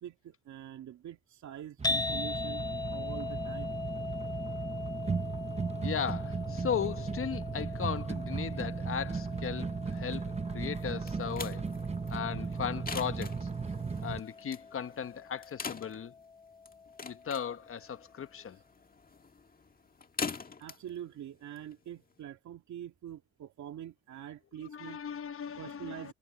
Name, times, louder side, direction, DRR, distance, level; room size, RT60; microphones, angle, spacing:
voice 1, 0.0-2.6 2.9-3.7 20.6-25.0 25.6-26.1, right 10 dB, 70° right, 2.5 m, -45 dB
sound 1, 1.8-18.1, left 4 dB, 15° left, 0.3 m, -41 dB
sound 2, 1.8-14.2, right 5 dB, 20° right, 0.8 m, -36 dB
voice 2, 5.8-10.2 10.5-11.6 12.1-13.5 14.0-16.1 17.0-18.6 24.6-26.1, left 8 dB, 45° left, 1.1 m, -37 dB
sound 3, 10.8-22.2, left 5 dB, 30° left, 1.8 m, -44 dB
cardioid pair, 90°, 30 cm